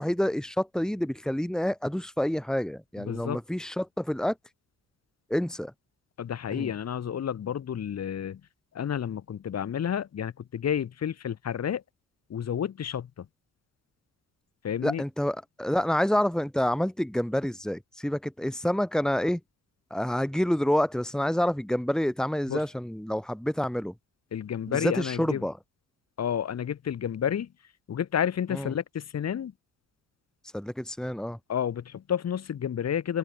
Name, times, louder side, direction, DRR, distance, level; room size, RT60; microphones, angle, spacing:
voice 1, 0.0-4.3 5.3-5.7 6.5-6.7 14.8-19.4 19.9-23.9 24.7-25.5 28.5-28.7 30.5-31.4, equal, ahead, 3.1 m, -28 dB
voice 2, 3.0-3.4 6.2-8.4 8.7-11.8 12.3-13.3 14.6-15.0 22.5-22.6 24.3-25.5 26.2-27.5 27.9-29.5 31.5-33.2, left 9 dB, 60° left, 5.8 m, -30 dB
open air
cardioid pair, 90°, 30 cm